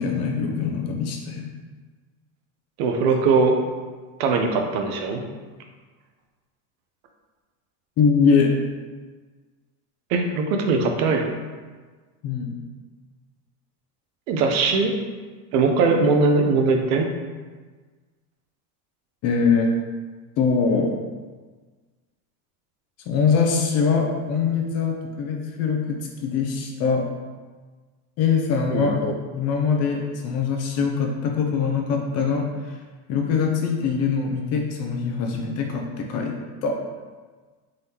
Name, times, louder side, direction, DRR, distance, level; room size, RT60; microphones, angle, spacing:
voice 1, 0.0-1.4 8.0-8.5 12.2-12.5 19.2-19.7 20.4-21.0 23.1-27.0 28.2-32.8 33.1-36.3 36.6-36.8, left 5 dB, 35° left, 1 dB, 0.4 m, -23 dB
voice 2, 2.8-3.6 4.2-5.2 10.1-11.3 14.3-14.9 15.5-17.1 28.7-28.9, right 4 dB, 65° right, 3 dB, 0.7 m, -20 dB
3.8 x 3.4 x 2.8 m, 1.4 s
supercardioid pair, 140°, 44 cm